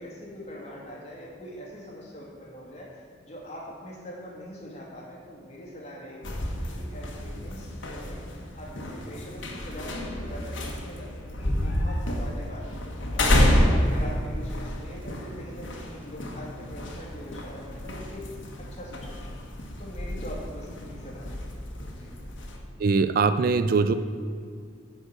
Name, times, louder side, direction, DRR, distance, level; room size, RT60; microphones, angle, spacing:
voice 1, 0.0-12.7 13.1-18.2 18.6-19.3 19.8-21.6 21.9-22.2, equal, 35° left, -4 dB, 2.2 m, -42 dB
sound 1, 6.2-22.6, left 1 dB, 70° left, 1.4 m, -29 dB
voice 2, 22.8-23.9, right 4 dB, 45° right, 11 dB, 0.3 m, -22 dB
9.6 x 4.9 x 7.8 m, 2.2 s
head